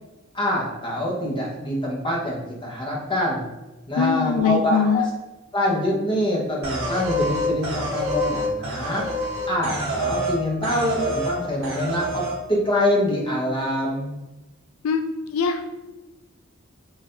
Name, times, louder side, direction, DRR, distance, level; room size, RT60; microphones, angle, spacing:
voice 1, 0.3-3.5 3.9-5.1 5.5-9.0 9.5-14.2, left 1 dB, 25° left, -4 dB, 1.0 m, -25 dB
voice 2, 4.0-5.0 14.8-15.8, left 6 dB, 80° left, 5 dB, 0.3 m, -22 dB
sound 1, 6.6-10.4 10.6-11.4 11.6-12.3, equal, 75° right, 1.2 m, -26 dB
4.0 x 2.7 x 3.9 m, 1.1 s
head